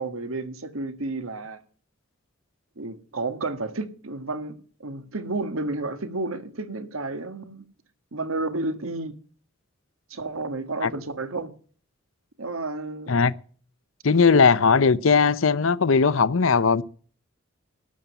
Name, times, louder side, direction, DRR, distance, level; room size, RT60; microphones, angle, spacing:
voice 1, 0.0-1.6 2.8-7.6 8.1-9.2 10.1-11.5 12.4-13.2, right 2 dB, 90° right, 1.7 m, -31 dB
voice 2, 14.0-16.8, left 5 dB, 75° left, 0.7 m, -19 dB
12.5 x 7.5 x 8.7 m
head